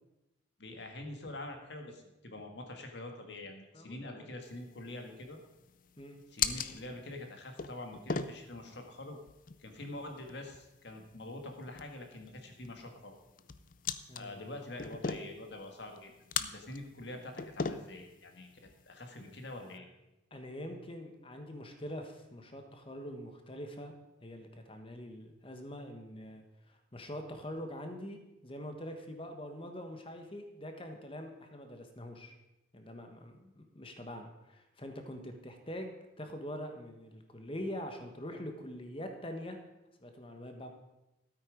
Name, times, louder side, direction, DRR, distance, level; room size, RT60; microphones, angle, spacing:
voice 1, 0.6-5.4 6.3-9.2 9.6-13.2 14.1-16.1 16.4-18.5 18.9-19.9, left 2 dB, 60° left, 4 dB, 1.8 m, -45 dB
voice 2, 3.7-4.3 6.0-6.2 14.1-14.6 19.7-19.9 20.3-23.9 24.2-32.3 32.7-39.6 40.0-40.7, equal, 25° left, 5 dB, 1.3 m, -44 dB
sound 1, 4.4-19.8, left 6 dB, 45° left, 0.5 m, -42 dB
13.0 x 8.6 x 5.2 m, 0.95 s
head